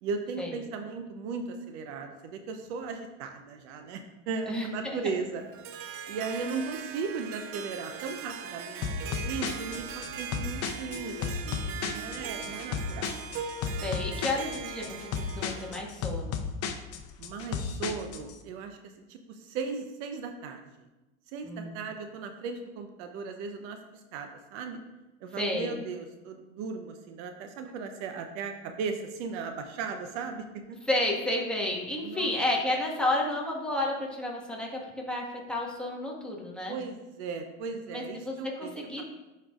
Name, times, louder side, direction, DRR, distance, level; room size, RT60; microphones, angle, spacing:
voice 1, 0.0-5.7 6.1-8.9 9.2-13.1 17.2-20.9 21.3-23.8 24.1-24.8 25.2-30.8 32.0-32.3 36.7-39.0, right 5 dB, 65° right, 5 dB, 0.8 m, -37 dB
voice 2, 4.5-5.0 13.8-16.4 21.4-21.7 25.4-25.8 30.9-36.8 37.9-39.0, left 1 dB, ahead, -3 dB, 1.5 m, -31 dB
Harp, 5.4-15.9, right 6 dB, 35° right, 0.6 m, -40 dB
sound 1, 8.8-18.3, left 6 dB, 40° left, 0.7 m, -34 dB
11.0 x 4.6 x 2.4 m, 1.1 s
hypercardioid pair, 105°, 38 cm